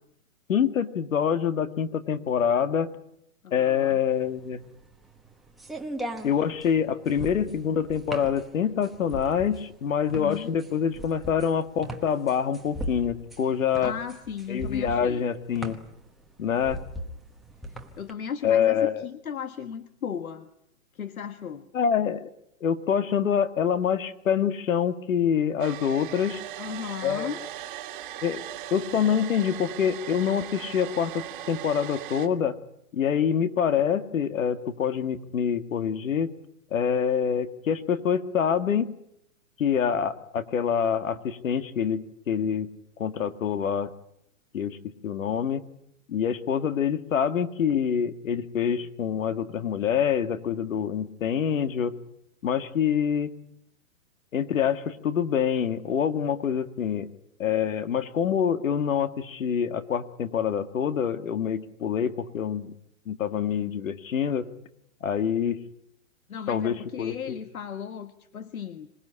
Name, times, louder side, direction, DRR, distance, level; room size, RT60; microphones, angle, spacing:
voice 1, 0.5-2.9 3.5-4.6 6.2-13.9 14.5-15.8 16.4-16.8 18.4-19.1 21.7-22.3 22.6-26.4 27.0-27.3 28.2-28.4 28.7-32.6 32.9-36.3 36.7-38.9 39.6-42.7 43.0-43.9 44.5-45.6 46.1-52.0 52.4-53.3 54.3-57.1 57.4-62.7 63.1-64.5 65.0-65.6 66.5-67.4, left 8 dB, 70° left, 10 dB, 2.0 m, -26 dB
voice 2, 3.4-4.0 10.1-10.5 13.8-15.2 17.7-20.5 20.9-21.7 26.6-27.4 66.3-68.9, left 7 dB, 90° left, 10 dB, 1.6 m, -36 dB
sound 1, 4.2-18.1, right 1 dB, ahead, 1.1 m, -39 dB
Domestic sounds home sounds, 25.6-32.3, right 13 dB, 40° right, 1.9 m, -39 dB
26.0 x 18.5 x 9.9 m, 0.79 s
hypercardioid pair, 155°, 41 cm